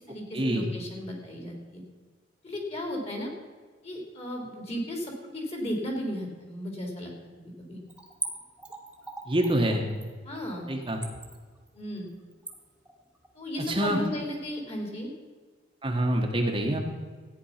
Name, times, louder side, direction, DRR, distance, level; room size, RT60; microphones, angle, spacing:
voice 1, 0.0-1.8 2.4-3.3 3.8-7.1 7.6-7.8 10.2-10.7 11.7-12.1 13.3-15.1, left 1 dB, 35° left, 1 dB, 3.2 m, -35 dB
Splash splatter / Trickle dribble, 7.9-14.3 14.6-14.7, right 3 dB, 5° right, 1.5 m, -41 dB
voice 2, 9.3-9.8 10.7-11.0 13.7-14.0 15.8-16.8, right 1 dB, 25° right, 1 dB, 1.2 m, -26 dB
14.5 x 9.6 x 5.8 m, 1.5 s
head